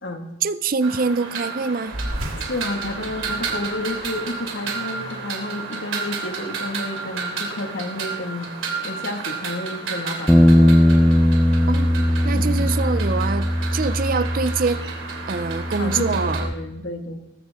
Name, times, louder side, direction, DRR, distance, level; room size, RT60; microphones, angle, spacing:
voice 1, 0.4-2.0 11.7-14.9 15.3-16.5, right 4 dB, 40° right, 0.5 m, -24 dB
sound 1, 0.8-16.4, right 5 dB, 65° right, 2.9 m, -32 dB
sound 2, 1.9-6.8, equal, 90° right, 2.2 m, -36 dB
voice 2, 2.5-8.5 8.8-10.8 12.3-12.7 15.8-17.2, left 2 dB, 65° left, 1.8 m, -31 dB
sound 3, 10.3-16.5, equal, 5° left, 0.6 m, -19 dB
20.0 x 14.0 x 3.6 m
head